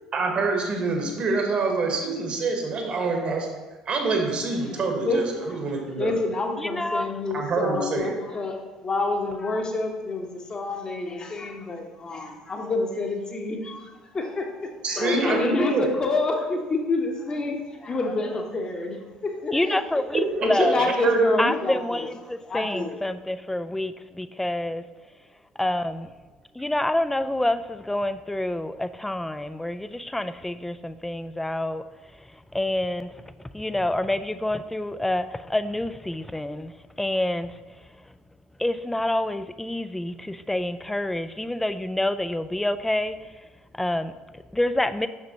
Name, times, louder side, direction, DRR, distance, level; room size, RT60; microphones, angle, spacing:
voice 1, 0.1-3.5 3.8-6.2 7.3-8.2 14.8-15.9 20.4-20.8 21.0-21.4, right 3 dB, 45° right, 1.3 m, -26 dB
voice 2, 5.0-5.5 6.0-8.5 8.8-19.8 20.6-22.1 22.5-23.0, left 3 dB, 30° left, 1.0 m, -28 dB
voice 3, 6.6-7.2 19.5-21.0 21.4-24.8 25.6-26.1 26.5-31.8 32.1-38.0 38.6-43.5 43.7-45.1, left 1 dB, 10° left, 0.3 m, -28 dB
6.3 x 5.9 x 2.8 m
figure-of-eight pair, 55°, 3 cm